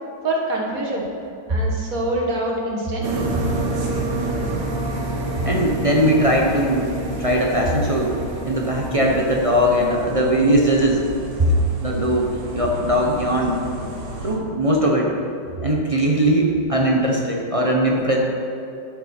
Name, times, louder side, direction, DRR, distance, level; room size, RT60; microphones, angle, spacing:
voice 1, 0.2-1.0 1.5-3.3, right 1 dB, 50° right, -2 dB, 2.0 m, -25 dB
sound 1, 3.0-14.4, right 2 dB, 70° right, 1.9 m, -29 dB
voice 2, 5.4-8.2 8.4-11.0 11.8-13.6 14.2-15.1 15.6-18.2, equal, 30° right, -1 dB, 0.6 m, -20 dB
11.5 x 7.2 x 4.4 m, 2.7 s
omnidirectional pair, 2.0 m